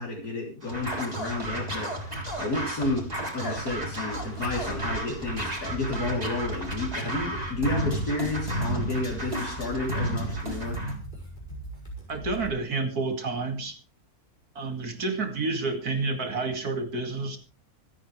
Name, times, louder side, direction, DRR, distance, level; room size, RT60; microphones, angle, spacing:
voice 1, 0.0-10.8, left 2 dB, 75° left, 3.9 m, -31 dB
Scratching (performance technique), 0.6-11.0, right 1 dB, 25° right, 3.7 m, -32 dB
sound 1, 4.1-12.5, right 2 dB, 30° left, 6.2 m, -39 dB
voice 2, 12.1-13.8 14.5-17.4, right 3 dB, 75° right, 2.9 m, -29 dB
25.5 x 9.3 x 3.3 m
omnidirectional pair, 1.6 m